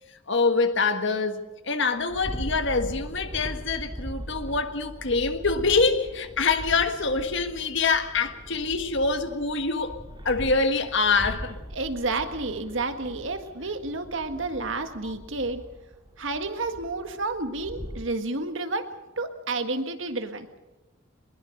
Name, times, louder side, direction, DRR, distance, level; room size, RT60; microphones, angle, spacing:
voice 1, 0.3-10.0 10.2-11.6 15.0-15.1, left 4 dB, 60° left, 1.7 m, -25 dB
sound 1, 2.0-18.0, equal, 25° right, 2.7 m, -40 dB
voice 2, 11.7-15.6 16.2-18.9 19.2-20.5, right 3 dB, 65° right, 1.7 m, -30 dB
21.5 x 21.0 x 6.5 m
head